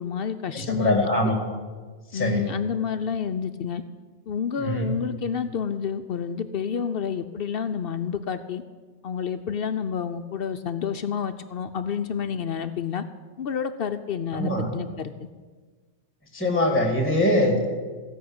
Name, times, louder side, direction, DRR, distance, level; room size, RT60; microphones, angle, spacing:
voice 1, 0.0-1.1 2.1-3.8 4.3-8.6 9.0-13.0 13.4-15.3, left 7 dB, 60° left, 10 dB, 0.6 m, -29 dB
voice 2, 0.5-1.4 2.1-2.5 4.6-4.9 14.3-14.7 16.3-17.7, left 1 dB, 10° left, 2 dB, 1.9 m, -23 dB
15.5 x 5.6 x 8.5 m, 1.4 s
omnidirectional pair, 1.4 m